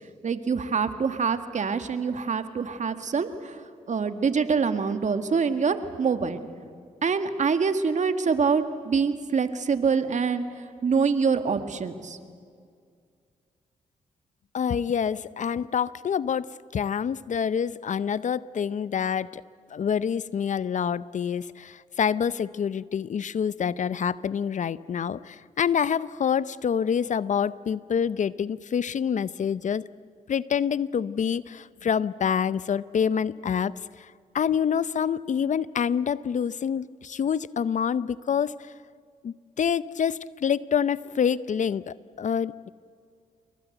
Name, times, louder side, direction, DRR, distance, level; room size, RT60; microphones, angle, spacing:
voice 1, 0.2-6.4 7.0-10.4 10.8-12.2, right 5 dB, 55° right, 9 dB, 2.0 m, -25 dB
voice 2, 14.5-19.4 19.7-29.8 30.3-38.7 39.2-42.7, left 7 dB, 55° left, 18 dB, 0.7 m, -27 dB
28.5 x 22.5 x 8.0 m, 2.2 s
cardioid pair, 60°, 15 cm